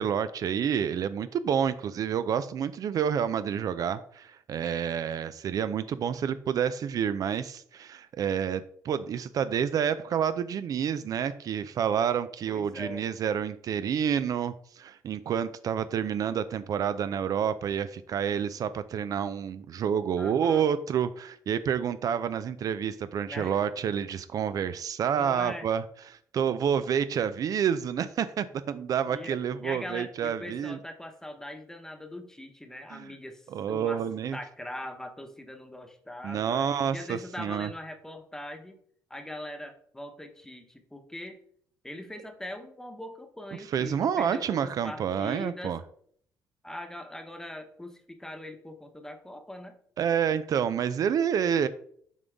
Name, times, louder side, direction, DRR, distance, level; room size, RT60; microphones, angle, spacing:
voice 1, 0.0-25.8 26.1-30.8 32.9-33.1 33.5-34.4 36.2-37.7 43.7-45.8 50.0-51.7, right 8 dB, 55° right, 13 dB, 0.4 m, -29 dB
voice 2, 12.5-13.1 20.2-20.7 23.3-23.6 25.1-25.7 29.0-34.0 34.3-38.8 39.1-41.4 41.8-45.8 46.6-49.8, left 1 dB, 5° left, 6 dB, 1.0 m, -41 dB
7.2 x 3.8 x 3.5 m, 0.63 s
cardioid pair, 85°, 7 cm